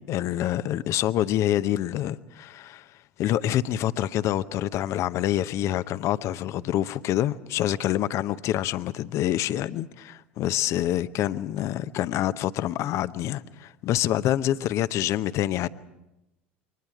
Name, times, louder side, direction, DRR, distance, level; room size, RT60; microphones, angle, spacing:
voice 1, 0.0-2.9 3.2-15.7, left 12 dB, 50° left, 0.8 m, -26 dB
29.0 x 24.0 x 4.8 m
hypercardioid pair, 75°, 6 cm